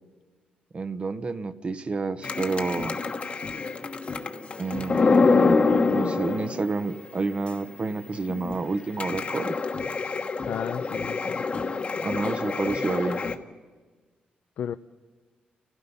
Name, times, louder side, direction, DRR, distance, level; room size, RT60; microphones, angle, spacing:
voice 1, 0.7-3.0 4.6-5.3 5.9-9.6 11.9-13.2, right 3 dB, 40° right, 12 dB, 0.8 m, -29 dB
sound 1, 2.2-7.0 7.5-7.6 7.9-8.0 8.3-13.4, left 4 dB, 40° left, 1.2 m, -26 dB
voice 2, 10.4-11.4 14.6-14.7, left 9 dB, 80° left, 9 dB, 0.5 m, -33 dB
29.0 x 16.0 x 5.6 m, 1.4 s
cardioid pair, 105°, 3 cm